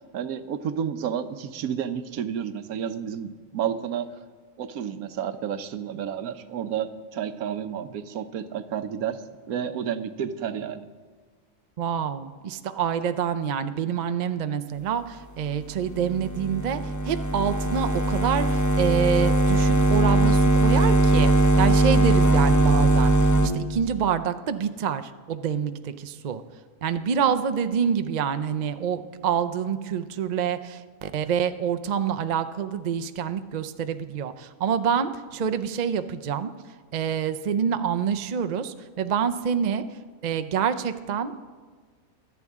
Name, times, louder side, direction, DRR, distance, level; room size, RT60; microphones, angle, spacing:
voice 1, 0.1-4.1 4.6-6.9 7.1-9.2 9.5-10.9, right 8 dB, 80° right, 10 dB, 1.2 m, -30 dB
voice 2, 11.8-26.4 26.8-36.5 36.9-41.4, right 7 dB, 55° right, 10 dB, 0.5 m, -27 dB
sound 1, 15.8-23.5, right 2 dB, 20° left, 0.6 m, -20 dB
25.0 x 8.4 x 3.6 m, 1.5 s
omnidirectional pair, 1.5 m